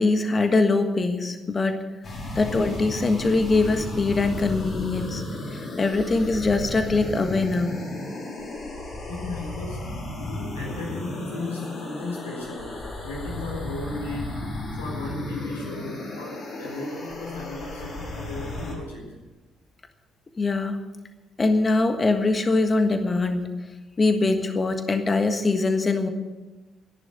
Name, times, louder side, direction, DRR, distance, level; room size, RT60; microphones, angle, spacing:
voice 1, 0.0-1.8 2.3-5.2 5.5-7.8 20.4-20.8 21.4-23.5 24.0-26.1, left 3 dB, 35° left, 7 dB, 1.6 m, -22 dB
sound 1, 2.0-18.8, left 2 dB, 50° left, 5.0 m, -34 dB
voice 2, 9.1-14.4 14.7-19.1, left 2 dB, 90° left, -3 dB, 4.3 m, -35 dB
14.0 x 11.0 x 8.0 m, 1.2 s
hypercardioid pair, 45°, 0 cm